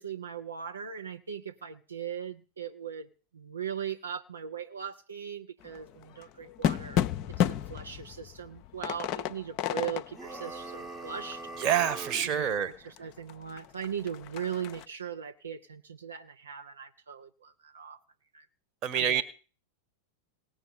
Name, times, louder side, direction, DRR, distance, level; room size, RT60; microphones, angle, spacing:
voice 1, 0.0-7.0 7.4-11.4 12.2-18.0 18.3-18.5 18.9-19.2, right 8 dB, 70° right, 0.9 m, -39 dB
sound 1, 5.6-12.6 13.0-13.1 13.3-14.9, left 10 dB, 40° left, 0.6 m, -33 dB
sound 2, 10.1-12.3, right 2 dB, 20° right, 1.1 m, -42 dB
voice 2, 11.6-12.7 18.8-19.2, right 9 dB, 35° right, 1.5 m, -27 dB
18.5 x 6.7 x 9.3 m
figure-of-eight pair, 90°, 0 cm